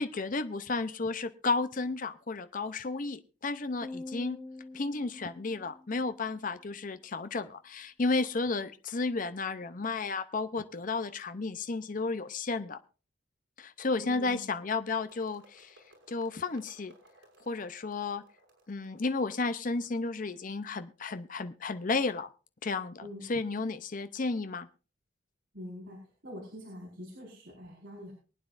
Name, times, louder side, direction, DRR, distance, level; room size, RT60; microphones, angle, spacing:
voice 1, 0.0-4.4 4.7-12.8 13.6-16.9 17.4-18.2 18.7-22.3 22.6-24.7, left 3 dB, 45° left, 10 dB, 0.6 m, -33 dB
sound 1, 3.8-6.2, left 2 dB, 10° left, 0.9 m, -45 dB
voice 2, 14.0-14.4 23.0-23.2 25.5-28.1, left 1 dB, 65° right, -4 dB, 5.1 m, -44 dB
sound 2, 15.1-21.0, right 1 dB, 85° right, 6.0 m, -62 dB
23.5 x 9.3 x 2.5 m, 0.35 s
head